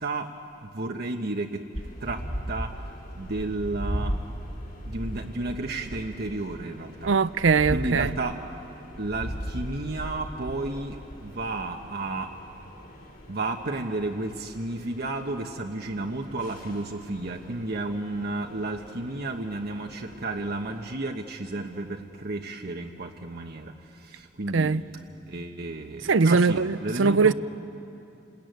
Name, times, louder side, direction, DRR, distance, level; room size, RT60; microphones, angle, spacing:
voice 1, 0.6-1.6 2.0-2.2 2.5-2.7 3.2-4.1 4.8-7.2 7.7-8.4 9.0-12.3 13.3-23.7 24.0-24.7 25.3-27.3, right 2 dB, 55° right, 1.2 m, -32 dB
sound 1, 1.7-21.0, equal, 45° left, 3.8 m, -39 dB
voice 2, 7.1-8.1 24.5-24.8 26.1-27.3, right 4 dB, 75° right, 0.6 m, -21 dB
29.5 x 20.5 x 9.3 m
head